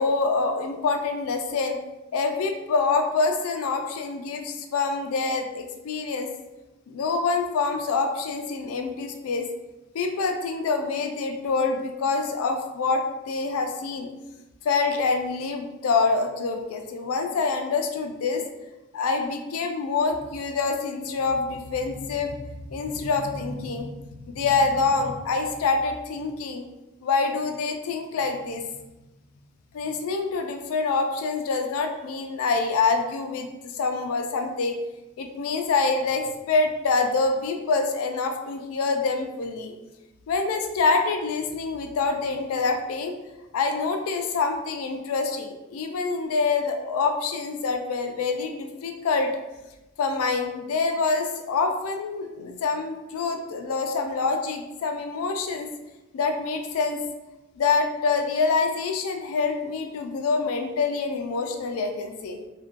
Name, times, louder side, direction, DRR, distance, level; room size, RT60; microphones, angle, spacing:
voice 1, 0.0-1.8 2.1-6.3 6.9-9.5 9.9-14.1 14.6-18.4 18.9-26.6 27.0-28.6 29.7-34.8 35.2-39.7 40.3-43.1 43.5-49.3 50.0-55.7 56.1-57.0 57.6-62.4, left 4 dB, 85° left, 5 dB, 0.3 m, -26 dB
2.5 x 2.2 x 2.5 m, 1.0 s
head